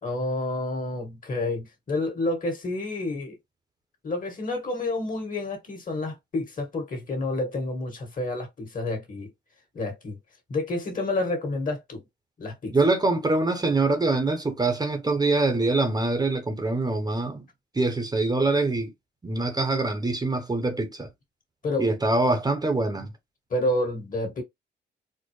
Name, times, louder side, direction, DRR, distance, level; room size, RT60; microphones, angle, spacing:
voice 1, 0.0-3.4 4.0-9.3 9.7-10.2 10.5-12.0 12.4-12.8 21.6-21.9 23.5-24.4, left 2 dB, 40° left, 1.8 m, -29 dB
voice 2, 12.7-17.5 17.7-18.9 19.2-21.1 21.8-23.1, right 2 dB, 20° right, 0.9 m, -24 dB
4.4 x 2.1 x 3.2 m
cardioid pair, 90°, 20 cm